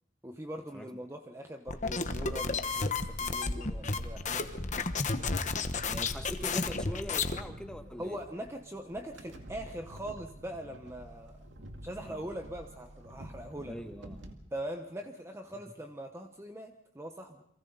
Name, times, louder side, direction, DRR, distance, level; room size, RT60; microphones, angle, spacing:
voice 1, 0.2-4.5 8.0-11.4 11.8-13.8 14.5-17.4, right 1 dB, 15° right, 5 dB, 1.0 m, -42 dB
sound 1, 1.7-7.4, left 4 dB, 40° left, 1.1 m, -32 dB
sound 2, 1.9-14.3, right 1 dB, 85° right, 2.3 m, -49 dB
voice 2, 4.6-4.9 5.8-8.2 12.0-12.2 13.7-14.2, equal, 5° left, 6 dB, 1.4 m, -42 dB
30.0 x 23.5 x 4.1 m, 0.75 s
head